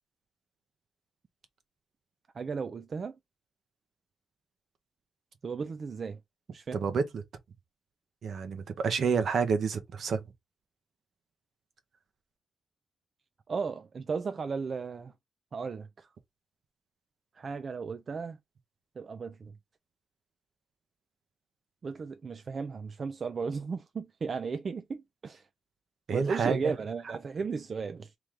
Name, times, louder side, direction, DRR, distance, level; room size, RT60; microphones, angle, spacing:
voice 1, 2.4-3.2 5.4-6.2 6.5-6.8 13.5-15.1 15.5-16.1 17.4-18.4 19.0-19.5 21.8-25.4 26.1-28.1, right 5 dB, 40° right, 0.4 m, -35 dB
voice 2, 6.7-7.2 8.2-10.2 26.1-26.7, right 5 dB, 60° right, 0.8 m, -29 dB
3.2 x 2.9 x 3.6 m
cardioid pair, 120°, 0 cm